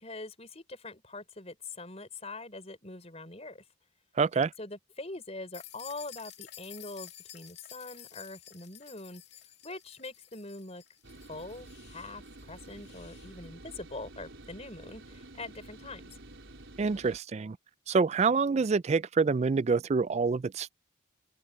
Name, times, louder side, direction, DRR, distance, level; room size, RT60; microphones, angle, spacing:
voice 1, 0.0-3.6 4.6-9.2 9.6-10.8 11.3-16.2, left 2 dB, 30° left, 5.2 m, -43 dB
voice 2, 4.2-4.5 16.8-17.6 17.9-20.8, right 4 dB, 30° right, 0.3 m, -26 dB
sound 1, 5.5-13.3, left 11 dB, 55° left, 2.8 m, -51 dB
sound 2, 11.0-17.2, right 2 dB, 65° right, 4.2 m, -50 dB
head